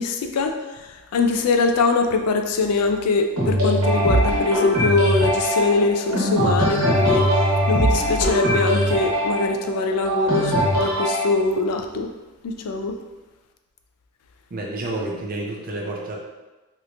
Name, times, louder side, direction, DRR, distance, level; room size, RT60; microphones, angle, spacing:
voice 1, 0.0-12.1 12.4-13.0, left 3 dB, 85° left, 5 dB, 0.4 m, -23 dB
sound 1, 3.4-11.3, equal, 90° right, 1.0 m, -21 dB
voice 2, 14.5-16.2, right 2 dB, 40° right, -1 dB, 0.5 m, -29 dB
3.2 x 2.9 x 2.5 m, 1.1 s
head